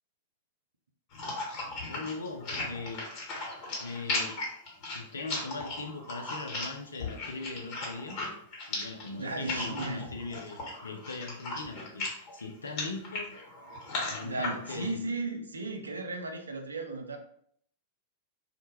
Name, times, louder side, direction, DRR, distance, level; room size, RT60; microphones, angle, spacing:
sound 1, 1.1-14.9, left 2 dB, 40° left, 1.1 m, -37 dB
voice 1, 1.9-3.1 3.8-4.4 4.9-8.2 8.7-13.4 14.0-15.0, left 3 dB, 80° left, 5 dB, 0.4 m, -40 dB
voice 2, 9.1-10.1 14.2-17.2, right 3 dB, 85° right, 4 dB, 0.4 m, -35 dB
2.1 x 2.0 x 3.1 m, 0.66 s
figure-of-eight pair, 95°, 0 cm